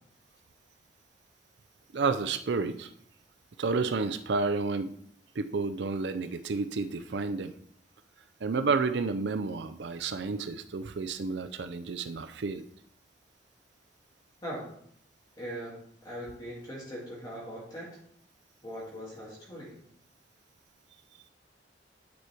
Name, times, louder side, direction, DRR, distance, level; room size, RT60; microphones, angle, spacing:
voice 1, 1.9-2.9 3.6-4.9 5.4-7.5 8.4-12.7, right 4 dB, 75° right, 11 dB, 0.5 m, -30 dB
voice 2, 15.4-17.9 18.6-19.7, equal, 25° left, -6 dB, 2.4 m, -40 dB
9.5 x 4.9 x 4.5 m, 0.66 s
head